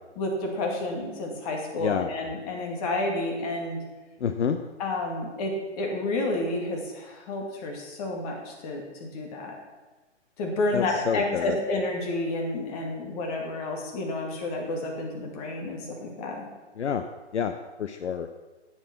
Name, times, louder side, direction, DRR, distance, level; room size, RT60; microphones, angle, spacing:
voice 1, 0.2-3.8 4.8-9.5 10.4-16.4, left 2 dB, 30° left, 1 dB, 2.2 m, -30 dB
voice 2, 1.8-2.1 4.2-4.6 10.7-11.6 16.7-17.1 17.3-18.3, left 7 dB, 70° left, 9 dB, 0.7 m, -28 dB
9.1 x 7.0 x 5.8 m, 1.2 s
figure-of-eight pair, 130°, 36 cm